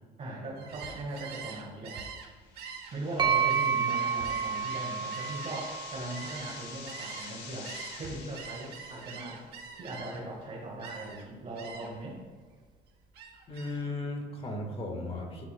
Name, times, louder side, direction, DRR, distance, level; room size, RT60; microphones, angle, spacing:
voice 1, 0.2-2.0 2.9-12.2, right 1 dB, 45° right, -5 dB, 1.5 m, -39 dB
Gull seagull, 0.6-7.4 7.6-10.4 10.8-11.3 11.6-12.0 12.4-13.9, right 6 dB, 70° right, 1.0 m, -45 dB
sound 1, 2.5-9.4, left 5 dB, 85° left, 0.8 m, -47 dB
sound 2, 3.2-6.9, right 7 dB, 25° right, 0.7 m, -30 dB
voice 2, 13.5-15.4, left 2 dB, 35° left, 1 dB, 1.5 m, -36 dB
11.5 x 4.0 x 2.2 m, 1.5 s
cardioid pair, 110°, 17 cm